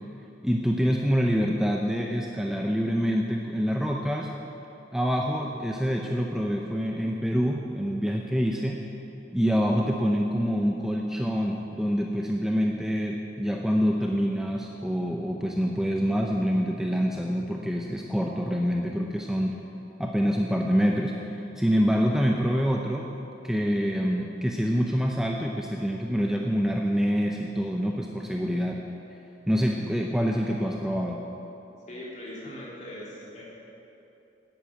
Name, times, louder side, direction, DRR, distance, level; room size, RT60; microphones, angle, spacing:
voice 1, 0.4-4.3 4.9-8.8 9.3-19.6 20.0-23.1 23.4-28.8 29.5-31.2, equal, 5° right, 0 dB, 0.6 m, -26 dB
voice 2, 31.9-33.4, left 1 dB, 40° left, -5 dB, 3.2 m, -40 dB
11.5 x 8.3 x 8.9 m, 2.9 s
head